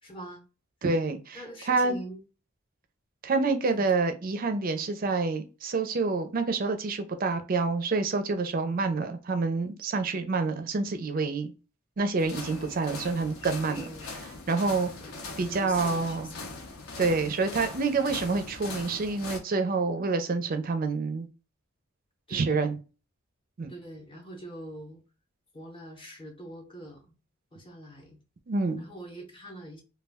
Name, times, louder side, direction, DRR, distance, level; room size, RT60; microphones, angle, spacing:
voice 1, 0.0-0.4 1.3-2.2 3.7-3.9 13.7-14.1 15.0-16.6 22.3-22.5 23.7-25.0 25.5-27.1 27.5-28.2 28.8-29.8, right 1 dB, 25° left, 0.7 m, -44 dB
voice 2, 0.8-1.4 1.7-1.9 3.2-11.5 12.0-13.8 14.5-14.9 15.4-16.3 17.0-21.3 22.3-22.8 23.6-23.7 28.5-28.8, right 4 dB, 40° right, 0.4 m, -27 dB
sound 1, 12.2-19.4, left 3 dB, 75° left, 0.6 m, -41 dB
2.2 x 2.1 x 3.4 m
head